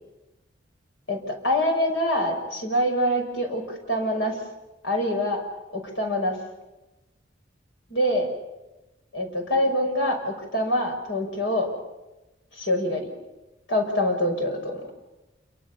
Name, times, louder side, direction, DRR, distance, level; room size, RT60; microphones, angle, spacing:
voice 1, 1.1-4.4 4.8-5.4 5.7-6.4 7.9-8.3 9.1-11.7 12.6-13.1 13.7-14.8, left 1 dB, 70° left, 3 dB, 5.9 m, -25 dB
28.0 x 23.0 x 7.1 m, 1.0 s
head